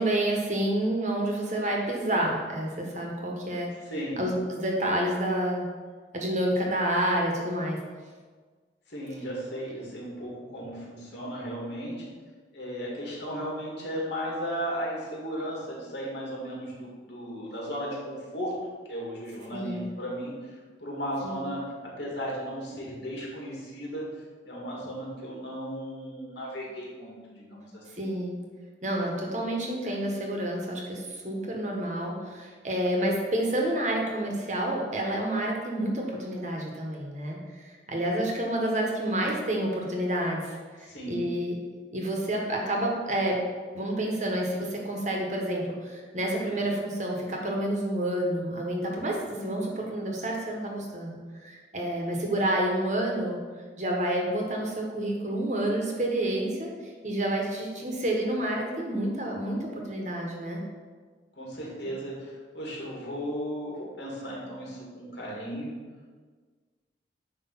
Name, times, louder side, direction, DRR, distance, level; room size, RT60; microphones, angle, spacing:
voice 1, 0.0-3.7 4.2-5.6 6.1-7.8 19.5-19.8 21.2-21.4 28.0-28.4 28.8-41.5 41.9-43.4 43.7-53.4 53.8-56.7 57.0-60.6, right 1 dB, 40° right, 0 dB, 1.3 m, -29 dB
voice 2, 3.9-4.2 8.9-11.9 12.5-18.5 18.9-21.6 22.0-24.1 24.4-27.8 40.8-41.2 61.3-65.7, equal, 75° left, -4 dB, 2.5 m, -35 dB
9.7 x 3.3 x 6.0 m, 1.5 s
head